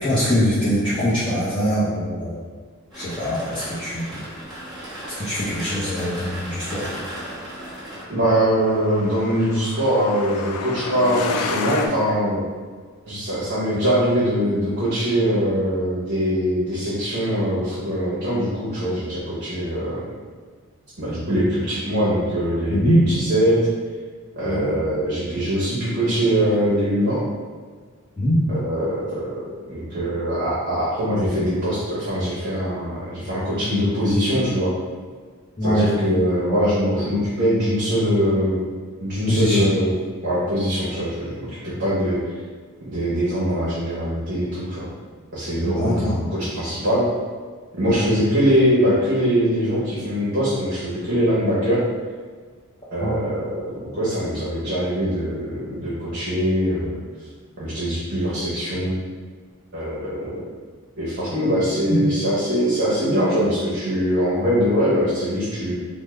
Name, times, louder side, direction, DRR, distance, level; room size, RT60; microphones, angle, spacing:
voice 1, 0.0-2.4 2.9-4.2 5.1-6.9 22.7-23.0 24.4-24.7 28.2-28.4 35.6-35.9 39.3-39.7 45.6-46.1 48.0-48.1 53.0-53.1 61.9-62.0, equal, 25° left, -11 dB, 0.6 m, -22 dB
sound 1, 2.9-8.0, right 1 dB, ahead, 1.1 m, -35 dB
Truck, 7.7-11.9, left 4 dB, 75° left, 0.3 m, -31 dB
voice 2, 8.1-12.4 13.1-20.1 21.0-23.6 24.4-27.2 28.5-34.7 35.6-38.6 39.0-39.9 40.2-42.2 42.8-44.9 45.3-47.1 47.7-51.8 52.9-57.0 57.6-59.0 59.7-60.4 61.0-65.8, equal, 50° right, -9 dB, 0.8 m, -22 dB
3.4 x 2.0 x 3.2 m, 1.5 s
head